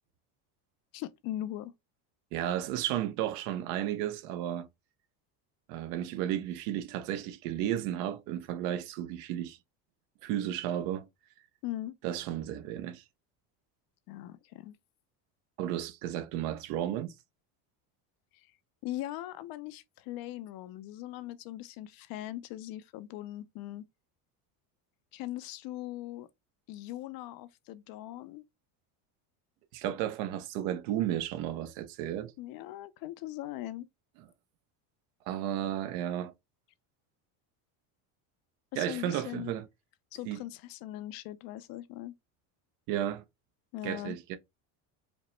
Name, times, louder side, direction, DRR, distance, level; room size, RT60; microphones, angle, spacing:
voice 1, 0.9-1.7 11.6-11.9 14.1-14.8 18.3-18.5 18.8-23.8 25.1-26.3 26.7-28.4 32.4-33.9 38.7-39.5 40.1-42.1 43.7-44.2, left 14 dB, 50° left, 0.5 m, -40 dB
voice 2, 2.3-4.7 5.7-9.6 10.2-11.1 12.0-13.0 15.6-17.1 29.7-32.3 35.3-36.3 38.8-39.7 40.3-40.4 42.9-43.2 43.8-44.4, right 11 dB, 75° right, 0.7 m, -33 dB
5.1 x 2.1 x 3.1 m
cardioid pair, 130°, 45 cm